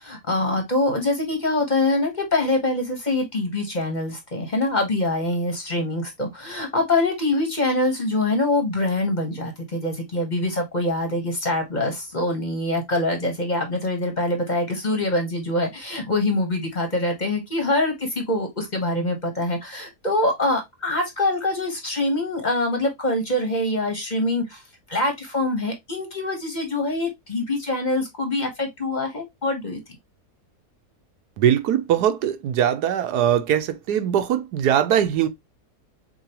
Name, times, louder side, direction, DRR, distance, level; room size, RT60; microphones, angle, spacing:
voice 1, 0.0-24.6 24.9-29.8, left 2 dB, 30° left, 1.2 m, -24 dB
voice 2, 31.4-35.3, right 10 dB, 80° right, 1.2 m, -21 dB
6.6 x 2.7 x 2.9 m
omnidirectional pair, 1.7 m